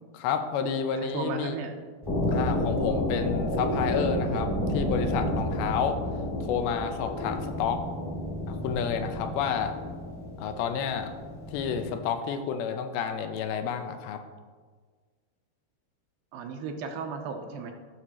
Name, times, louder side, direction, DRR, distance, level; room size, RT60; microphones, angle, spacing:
voice 1, 0.1-1.6 2.3-6.0 6.4-7.8 8.5-9.7 10.4-11.1 11.5-14.2, left 7 dB, 85° left, 7 dB, 2.5 m, -30 dB
voice 2, 1.0-1.7 16.3-17.7, right 5 dB, 80° right, 4 dB, 2.3 m, -35 dB
sound 1, 2.0-11.9, left 1 dB, 15° left, 0.8 m, -30 dB
14.0 x 6.4 x 2.9 m, 1.5 s
omnidirectional pair, 4.4 m